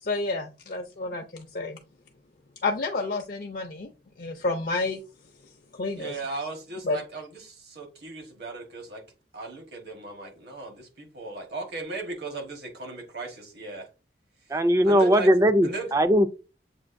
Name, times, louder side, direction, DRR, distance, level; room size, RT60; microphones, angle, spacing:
voice 1, 0.0-1.8 2.6-3.9 4.2-5.0 5.7-6.2 6.8-7.0, left 3 dB, 55° left, 0.5 m, -30 dB
voice 2, 6.0-9.0 9.3-13.9 14.8-15.3 15.6-15.9, right 3 dB, 65° right, 1.2 m, -37 dB
voice 3, 14.5-16.3, equal, 20° right, 0.3 m, -20 dB
7.2 x 2.5 x 2.5 m
head